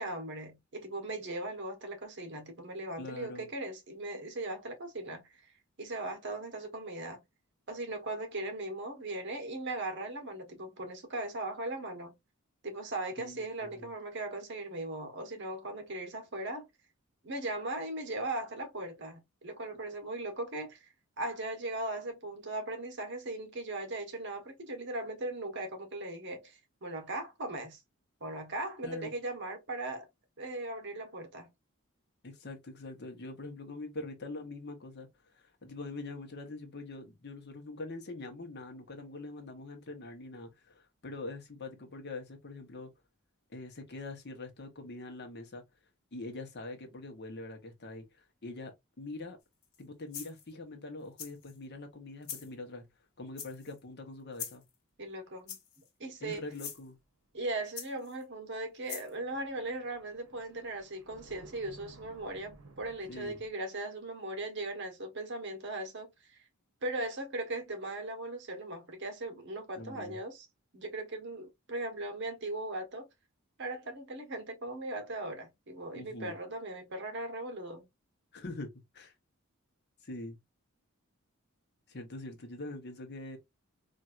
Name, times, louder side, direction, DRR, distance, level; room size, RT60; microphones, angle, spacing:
voice 1, 0.0-5.2 5.8-7.2 7.7-12.1 12.6-16.7 17.2-20.9 21.2-27.8 28.2-30.1 30.4-31.5 55.0-55.6 56.0-56.4 57.3-66.4 66.8-70.5 70.7-73.1 73.6-77.8, right 2 dB, 55° right, 1.1 m, -38 dB
voice 2, 3.0-3.5 13.2-13.9 28.8-29.1 32.2-35.1 35.3-42.9 43.5-45.6 46.1-49.4 49.8-52.9 53.2-54.6 56.2-57.0 63.1-63.4 69.8-70.2 75.9-76.3 78.3-79.1 80.0-80.4 81.9-83.4, left 2 dB, 50° left, 0.9 m, -44 dB
sound 1, 49.6-49.8 50.1-50.5 51.2-51.6 52.2-52.5 53.4-53.8 54.3-54.7 55.5-55.9 56.5-56.8 57.8-58.2 58.9-59.1, left 7 dB, 70° left, 1.2 m, -42 dB
sound 2, 56.1-56.8 57.0-57.5 58.3-58.5 58.9-63.5, right 2 dB, 75° right, 1.0 m, -57 dB
4.3 x 2.5 x 2.4 m
head